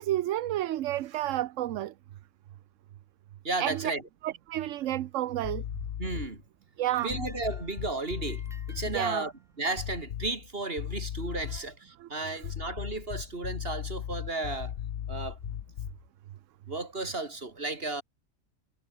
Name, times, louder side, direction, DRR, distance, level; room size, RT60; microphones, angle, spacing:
voice 1, 0.0-1.9 3.6-3.9 4.2-5.6 6.8-7.3 8.9-9.2 12.0-12.1, right 13 dB, 75° right, 1.0 m, -30 dB
voice 2, 3.4-4.0 6.0-6.4 7.0-8.4 8.7-9.3 9.6-14.7 15.1-15.4 16.7-18.0, right 2 dB, 45° right, 3.6 m, -34 dB
sound 1, 5.4-6.4 7.1-9.0 9.8-10.5 10.8-11.7 12.4-16.1, left 10 dB, 65° left, 1.1 m, -37 dB
sound 2, 6.9-9.7 10.6-10.7 11.6-11.7 12.5-12.6, equal, ahead, 5.3 m, -56 dB
omnidirectional pair, 1.4 m